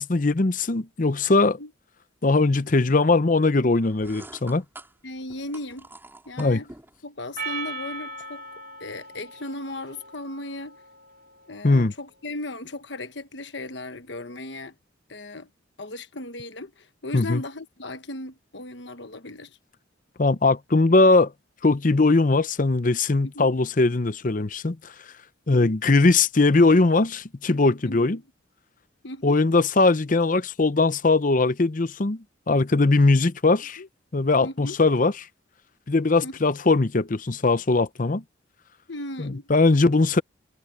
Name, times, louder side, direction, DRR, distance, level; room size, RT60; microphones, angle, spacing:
voice 1, 0.0-1.6 2.2-4.6 6.4-6.6 11.6-11.9 17.1-17.4 20.2-21.3 21.6-24.9 25.5-28.2 29.2-33.8 34.1-35.1 35.9-38.2 39.2-40.2, left 3 dB, 40° left, 0.7 m, -20 dB
sound 1, 3.7-7.0, right 2 dB, 10° right, 4.7 m, -47 dB
voice 2, 5.0-5.9 6.2-6.7 7.0-8.4 8.8-10.8 11.5-14.7 15.1-15.5 15.8-19.6 23.3-23.5 25.5-25.8 27.8-28.2 29.0-29.4 33.8-33.9 34.4-34.8 36.2-36.4 38.9-39.5, left 2 dB, 60° left, 1.3 m, -36 dB
Percussion, 7.4-11.9, right 2 dB, 45° right, 2.3 m, -39 dB
head